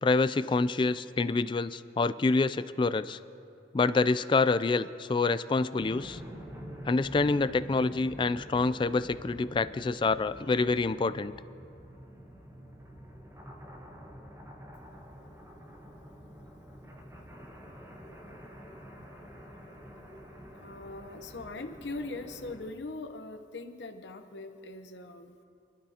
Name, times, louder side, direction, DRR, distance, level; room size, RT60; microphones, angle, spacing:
voice 1, 0.0-3.2 3.7-6.2 6.9-11.3, left 3 dB, 25° left, 14 dB, 0.3 m, -27 dB
sound 1, 5.8-22.7, equal, 15° right, 1.3 m, -47 dB
voice 2, 20.5-25.4, left 2 dB, 80° left, 6 dB, 0.9 m, -41 dB
28.0 x 12.0 x 2.9 m, 2.5 s
head